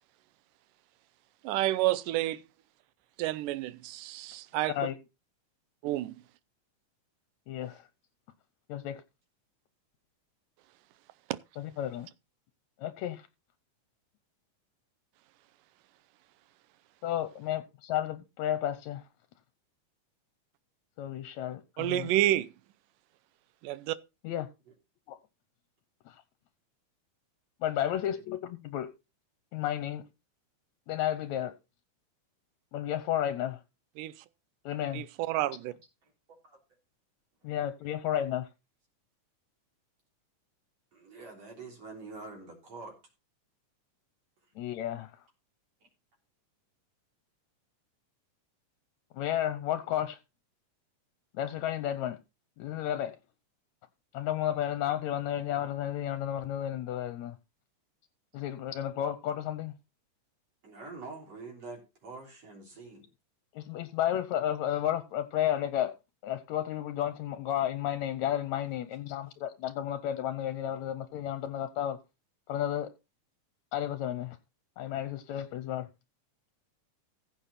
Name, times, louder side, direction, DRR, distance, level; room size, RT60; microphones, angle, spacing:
voice 1, 1.4-2.4 3.2-4.7 5.8-6.1 21.8-22.5 23.6-24.0 34.0-34.1 34.9-35.7, right 15 dB, 90° right, 2.3 m, -29 dB
voice 2, 7.5-7.9 8.7-9.0 11.6-12.1 12.8-13.3 17.0-19.1 21.0-22.1 24.2-24.5 25.1-25.2 26.1-26.2 27.6-28.9 29.5-30.1 30.9-31.6 32.7-33.6 34.6-35.1 37.4-38.5 44.6-45.3 49.1-50.2 51.3-52.2 52.6-53.2 54.1-57.4 58.3-59.8 63.5-65.9 66.2-72.0 72.5-72.9 73.7-74.4 74.8-75.9, left 11 dB, 70° left, 2.0 m, -32 dB
voice 3, 40.9-43.0 60.6-63.0, right 3 dB, 55° right, 4.6 m, -45 dB
15.5 x 7.0 x 4.2 m
omnidirectional pair, 3.7 m